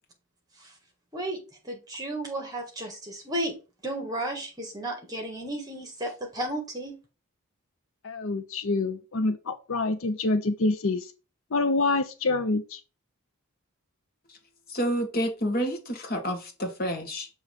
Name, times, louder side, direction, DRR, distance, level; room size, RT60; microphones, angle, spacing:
voice 1, 1.1-3.6 3.8-7.0, right 1 dB, 15° right, 1.6 m, -33 dB
voice 2, 8.0-11.1 11.5-12.8, left 3 dB, 65° left, 0.6 m, -26 dB
voice 3, 14.7-17.3, equal, 45° left, 1.6 m, -29 dB
6.8 x 3.1 x 5.1 m
head